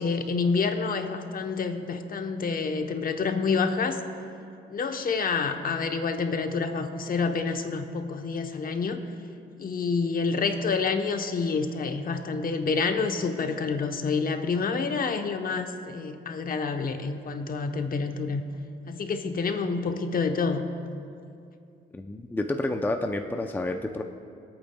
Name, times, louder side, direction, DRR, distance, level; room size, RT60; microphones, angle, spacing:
voice 1, 0.0-4.0 4.7-9.0 9.6-18.4 18.9-20.6, left 4 dB, 45° left, 6 dB, 0.9 m, -28 dB
voice 2, 21.9-24.0, left 2 dB, 10° left, 5 dB, 0.5 m, -29 dB
24.5 x 8.7 x 2.3 m, 2.5 s
cardioid pair, 90°, 20 cm